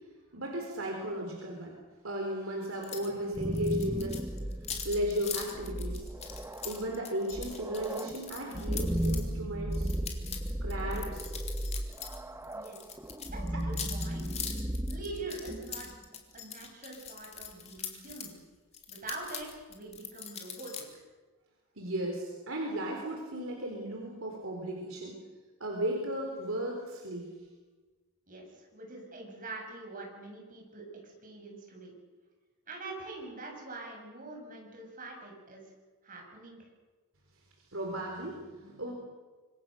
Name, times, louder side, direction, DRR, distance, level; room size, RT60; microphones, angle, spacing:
voice 1, 0.3-1.7 2.0-4.2 4.8-6.1 6.6-9.9 10.6-11.4 21.8-25.1 25.6-27.3 37.7-38.9, right 1 dB, 60° right, 0 dB, 4.3 m, -35 dB
sound 1, 2.8-3.1 3.3-9.2 9.7-12.2 12.4-18.3 18.7-20.8, left 7 dB, 30° left, 3.1 m, -42 dB
sound 2, 3.1-16.0, right 1 dB, 10° right, 1.0 m, -35 dB
voice 2, 13.2-14.3 14.9-15.9 16.3-18.4 18.9-21.0 28.3-32.0 32.7-35.7 36.0-36.7, right 2 dB, 40° right, 0 dB, 7.3 m, -44 dB
26.5 x 23.5 x 6.6 m, 1.3 s
head